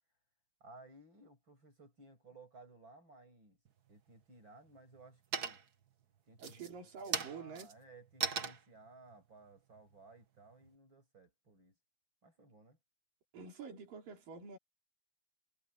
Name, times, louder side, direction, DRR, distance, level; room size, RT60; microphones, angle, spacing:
voice 1, 0.6-3.6 3.9-5.6 6.3-6.7 7.1-11.8 12.2-12.8, right 2 dB, 30° right, 7.3 m, -58 dB
sound 1, 3.6-4.2 4.7-5.1 5.3-5.9 6.3-10.7, right 6 dB, 55° right, 1.1 m, -40 dB
voice 2, 6.4-7.7 13.3-14.6, right 5 dB, 75° right, 5.7 m, -48 dB
omnidirectional pair, 4.0 m